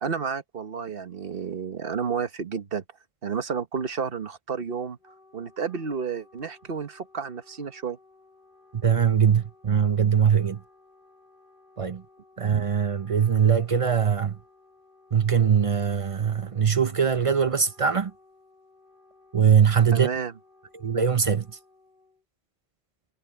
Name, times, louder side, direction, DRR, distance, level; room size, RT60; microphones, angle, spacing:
voice 1, 0.0-2.8 3.2-5.0 5.3-8.0 19.9-20.3, right 6 dB, 65° right, 1.4 m, -31 dB
Wind instrument woodwind instrument, 4.8-22.2, left 2 dB, 55° left, 7.1 m, -58 dB
voice 2, 8.7-10.6 11.8-12.0 12.4-14.4 15.1-18.1 19.3-20.1 20.7-21.6, right 7 dB, 40° right, 0.6 m, -22 dB
omnidirectional pair, 1.0 m